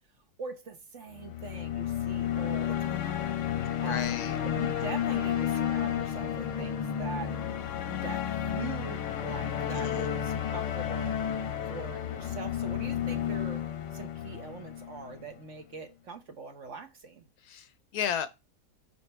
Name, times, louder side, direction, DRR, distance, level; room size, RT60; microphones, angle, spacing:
voice 1, 0.4-3.4 3.8-4.2 4.5-7.3 7.9-11.2 11.7-13.6 13.9-17.3, right 4 dB, 50° right, 1.3 m, -42 dB
sound 1, 1.1-15.3, left 9 dB, 90° left, 1.4 m, -32 dB
voice 2, 3.8-4.4 9.7-10.1 17.4-18.3, left 8 dB, 70° left, 1.1 m, -34 dB
5.7 x 4.4 x 4.3 m
omnidirectional pair, 1.8 m